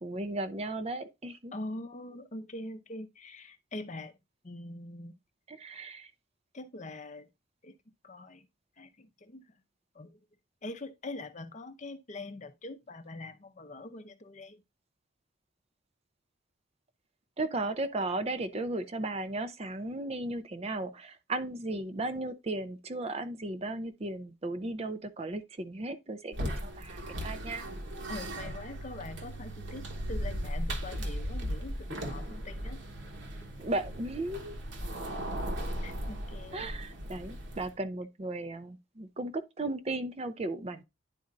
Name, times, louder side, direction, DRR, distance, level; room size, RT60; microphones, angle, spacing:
voice 1, 0.0-1.5 5.5-6.1 17.4-27.7 33.6-34.5 36.5-40.8, right 2 dB, 30° right, 0.4 m, -35 dB
voice 2, 1.5-4.1 4.4-5.2 6.5-7.3 7.6-7.7 8.0-8.5 8.8-9.4 9.9-10.2 10.6-14.6 28.1-32.8 33.4-33.5 35.8-36.7, left 2 dB, 35° left, 0.6 m, -43 dB
sound 1, 26.3-37.8, equal, 60° right, 1.2 m, -37 dB
10.5 x 4.2 x 2.5 m
head